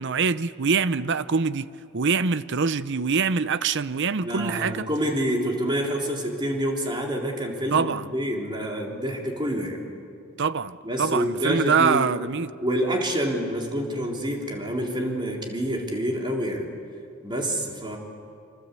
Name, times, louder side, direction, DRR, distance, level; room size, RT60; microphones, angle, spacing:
voice 1, 0.0-1.7 1.9-4.9 7.7-8.1 10.4-12.5, right 5 dB, 55° right, 0.7 m, -24 dB
voice 2, 4.2-9.8 10.8-12.1 12.6-16.7 17.2-18.0, equal, 20° right, 3.7 m, -27 dB
27.0 x 26.5 x 8.3 m
head